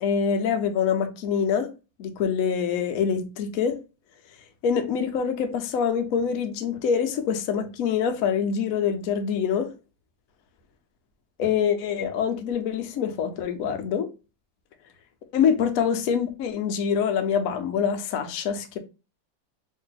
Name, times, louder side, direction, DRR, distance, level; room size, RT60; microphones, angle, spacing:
voice 1, 0.0-1.7 2.0-3.8 4.6-9.7 11.4-14.1 15.3-18.8, left 7 dB, 80° left, 0.7 m, -25 dB
3.0 x 2.7 x 3.9 m
omnidirectional pair, 2.2 m